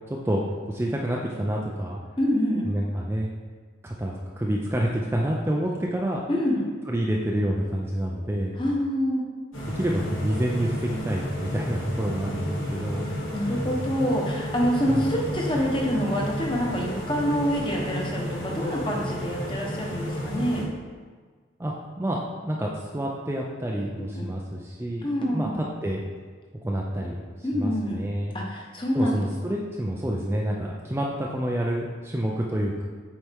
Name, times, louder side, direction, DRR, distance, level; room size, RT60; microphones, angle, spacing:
voice 1, 0.1-0.4 0.7-2.0 2.6-3.3 3.8-6.2 6.9-8.6 9.8-13.1 13.6-13.7 14.9-15.1 21.6-26.0 26.6-28.4 28.9-32.8, right 1 dB, 10° right, -2 dB, 0.4 m, -28 dB
voice 2, 2.2-2.6 6.3-6.6 8.6-9.2 12.5-12.7 13.3-20.6 24.1-24.3 25.0-25.6 27.4-28.0 28.3-29.2, equal, 25° left, -2 dB, 1.1 m, -26 dB
sound 1, 9.5-20.6, equal, 90° left, 1.6 m, -32 dB
7.8 x 4.3 x 3.5 m, 1.5 s
head